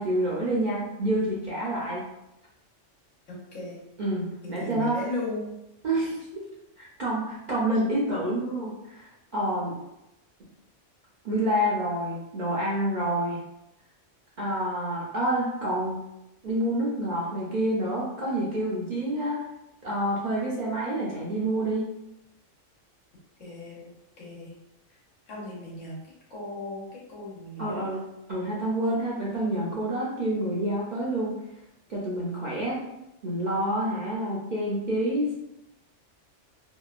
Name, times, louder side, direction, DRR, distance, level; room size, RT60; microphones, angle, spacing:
voice 1, 0.0-2.0 4.0-5.0 5.8-6.1 7.0-9.1 9.3-9.7 11.2-13.4 14.4-16.0 16.4-19.4 19.8-21.8 27.6-28.0 28.3-31.3 31.9-32.8 33.2-35.4, right 1 dB, 55° right, -6 dB, 0.5 m, -28 dB
voice 2, 3.3-3.8 4.4-5.5 6.0-6.2 23.4-24.6 24.9-25.0 25.3-28.0, left 2 dB, 90° left, -5 dB, 1.3 m, -37 dB
2.8 x 2.1 x 2.3 m, 0.90 s
omnidirectional pair, 1.3 m